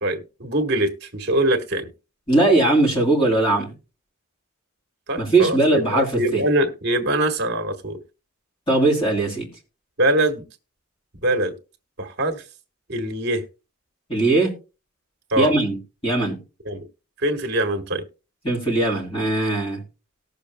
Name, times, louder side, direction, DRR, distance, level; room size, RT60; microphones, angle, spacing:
voice 1, 0.0-1.9 5.1-8.0 10.0-10.4 11.2-11.5 12.0-12.4 12.9-13.4 15.3-15.5 16.7-16.8 17.2-18.0, right 1 dB, 50° right, 1.5 m, -23 dB
voice 2, 2.3-3.7 5.2-6.4 8.7-9.5 14.1-14.5 15.4-15.8 16.0-16.4 18.4-19.8, right 2 dB, 25° left, 3.0 m, -19 dB
19.0 x 6.7 x 2.2 m
head